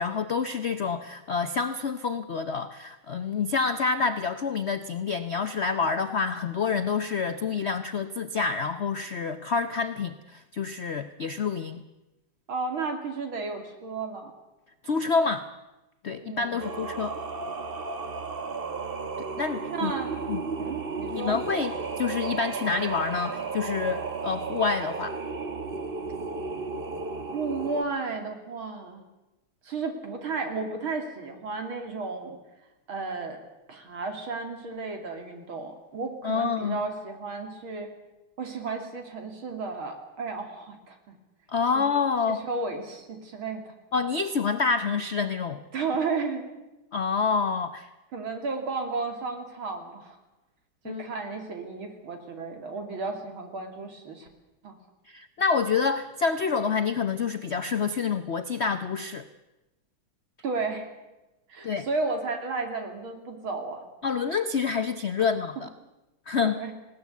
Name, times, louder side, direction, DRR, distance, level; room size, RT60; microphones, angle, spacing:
voice 1, 0.0-11.8 14.8-15.5 16.0-17.1 19.2-19.9 20.3-20.4 21.1-25.2 36.2-36.8 41.5-42.4 43.9-45.6 46.9-47.9 50.8-51.0 55.1-59.3 61.6-61.9 64.0-65.7 66.3-66.6, left 5 dB, 85° left, 10 dB, 0.5 m, -27 dB
voice 2, 12.5-14.3 16.2-16.7 19.7-20.1 20.6-21.4 27.3-29.0 29.6-32.4 32.9-33.4 33.7-37.9 38.4-41.2 41.7-41.8 42.3-43.7 45.7-46.5 48.1-50.2 50.8-54.3 54.6-54.8 60.4-60.9 61.5-63.9 66.5-66.7, right 4 dB, 70° right, 5 dB, 3.5 m, -33 dB
Singing, 16.6-27.8, right 4 dB, 30° right, 1.2 m, -34 dB
20.0 x 18.0 x 8.3 m, 1.0 s
omnidirectional pair, 2.3 m